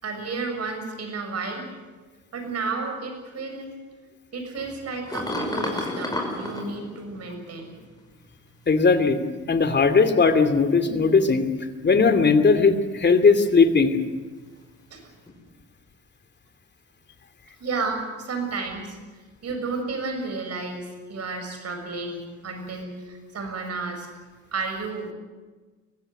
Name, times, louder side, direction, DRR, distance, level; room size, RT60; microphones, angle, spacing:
voice 1, 0.0-1.7 2.3-3.8 4.3-7.7 14.9-15.0 17.6-19.0 19.4-24.1 24.5-25.1, right 4 dB, 55° right, 5 dB, 6.7 m, -32 dB
sound 1, 4.6-7.8 8.7-9.9 10.5-11.1 15.3-15.4, left 1 dB, 15° left, 5.6 m, -32 dB
voice 2, 8.7-9.2 9.5-11.5 11.8-14.0, left 4 dB, 35° left, 8 dB, 2.6 m, -18 dB
23.5 x 15.5 x 9.5 m, 1.3 s
cardioid pair, 90°, 30 cm